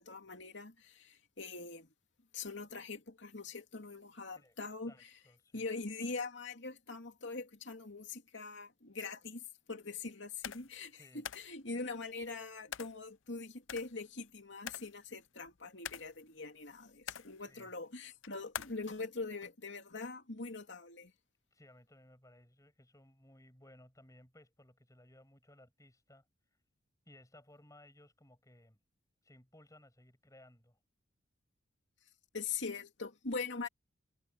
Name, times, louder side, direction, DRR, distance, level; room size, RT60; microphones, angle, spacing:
voice 1, 0.0-1.9 2.3-5.1 5.5-21.1 32.3-33.7, left 4 dB, 65° left, 2.8 m, -43 dB
voice 2, 4.9-5.7 11.0-11.2 17.4-17.7 21.5-26.3 27.1-28.8 29.2-30.8, left 1 dB, 15° left, 7.0 m, -61 dB
sound 1, 10.4-10.8 11.2-11.5 12.7-13.0 13.7-14.3 14.7-15.0 15.5-16.3 16.9-17.4 18.2-18.8, left 9 dB, 80° left, 0.6 m, -44 dB
head